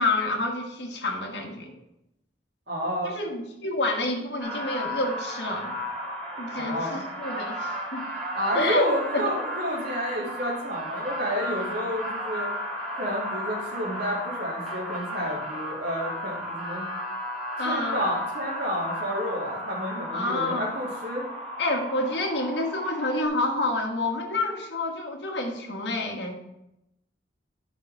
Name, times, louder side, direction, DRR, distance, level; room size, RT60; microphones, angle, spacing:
voice 1, 0.0-1.7 3.0-5.8 6.4-8.1 8.5-8.9 9.1-9.3 17.6-18.0 20.1-20.7 21.6-26.3, left 2 dB, 70° left, 1 dB, 1.6 m, -28 dB
voice 2, 2.7-3.1 6.5-7.0 8.3-12.5 12.9-16.9 17.6-21.3, equal, 65° right, -9 dB, 2.4 m, -30 dB
sound 1, 4.4-23.3, equal, 5° left, 2.7 m, -34 dB
11.0 x 5.7 x 4.7 m, 0.86 s
head